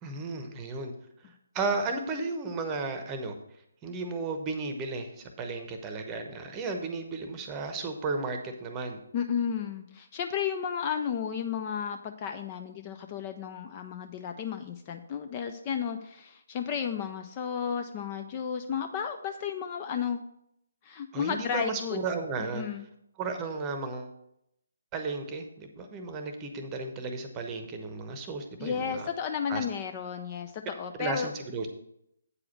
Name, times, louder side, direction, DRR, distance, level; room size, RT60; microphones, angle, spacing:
voice 1, 0.0-0.9 1.5-3.3 3.8-9.0 21.1-22.6 23.2-24.1 24.9-29.1 29.5-29.6 31.0-31.8, right 3 dB, 20° right, 6 dB, 0.9 m, -34 dB
voice 2, 9.1-20.2 20.8-22.0 22.4-22.9 28.6-31.3, left 7 dB, 25° left, 7 dB, 0.5 m, -33 dB
8.5 x 4.9 x 5.9 m, 0.77 s
figure-of-eight pair, 140°, 0 cm